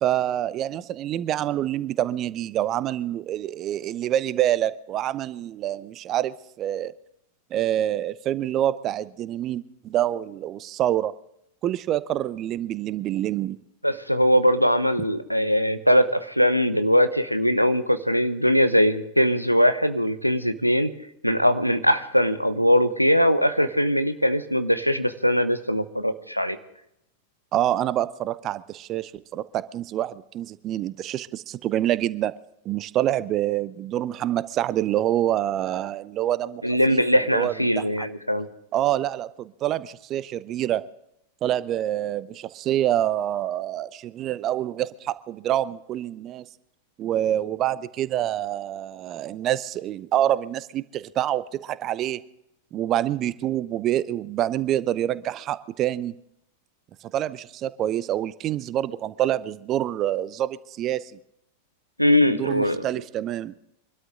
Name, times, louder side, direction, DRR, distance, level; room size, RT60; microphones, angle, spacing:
voice 1, 0.0-6.9 7.5-11.1 11.6-13.6 27.5-32.3 32.6-36.6 36.9-37.0 37.3-38.1 38.7-40.8 41.4-46.4 47.0-52.2 52.7-56.1 57.1-61.0 62.3-63.5, right 12 dB, 35° right, 17 dB, 0.7 m, -26 dB
voice 2, 13.8-20.9 21.2-26.6 36.6-38.5 62.0-62.8, equal, 90° left, 10 dB, 1.0 m, -21 dB
25.0 x 12.5 x 3.8 m, 0.80 s
figure-of-eight pair, 90°, 0 cm